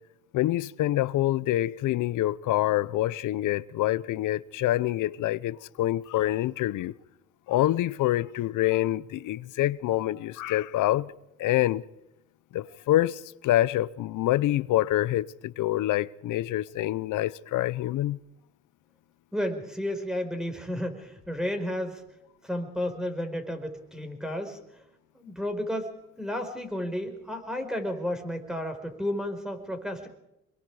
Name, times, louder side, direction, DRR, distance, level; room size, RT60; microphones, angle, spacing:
voice 1, 0.3-6.9 7.5-11.1 11.4-11.8 12.5-18.2, left 15 dB, 85° left, 0.8 m, -26 dB
voice 2, 19.3-22.0 22.4-24.6 25.1-30.1, left 1 dB, ahead, 5.0 m, -32 dB
27.0 x 22.5 x 4.9 m
cardioid pair, 90°, 30 cm